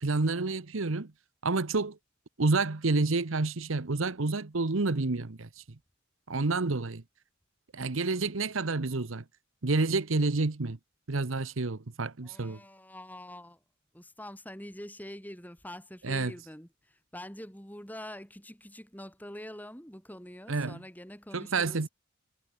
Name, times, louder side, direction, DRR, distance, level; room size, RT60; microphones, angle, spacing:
voice 1, 0.0-1.1 1.4-2.0 2.4-5.6 6.3-7.0 7.7-9.2 9.6-10.8 11.1-12.6 16.0-16.3 20.5-20.8 21.3-21.9, right 3 dB, 85° right, 1.1 m, -29 dB
voice 2, 12.2-13.6 13.9-21.8, left 1 dB, 10° left, 7.1 m, -45 dB
head